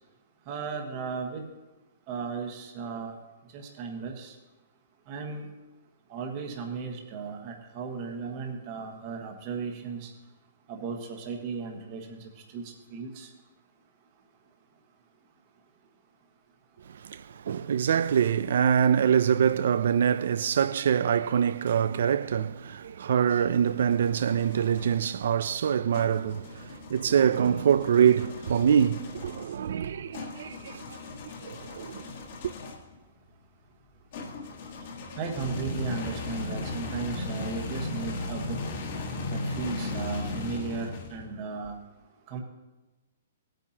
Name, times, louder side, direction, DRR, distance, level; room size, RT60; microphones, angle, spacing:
voice 1, 0.5-1.4 2.1-3.1 3.5-4.3 5.1-5.5 6.1-10.1 10.7-12.2 12.5-13.3 35.2-38.6 39.3-41.8 42.3-42.4, right 5 dB, 30° right, 1.3 m, -35 dB
voice 2, 17.0-32.1, right 8 dB, 65° right, 0.4 m, -25 dB
sound 1, 23.4-25.0 25.9-32.9 34.1-41.4, left 3 dB, 45° left, 1.5 m, -37 dB
17.5 x 9.0 x 2.9 m
hypercardioid pair, 170°, 0 cm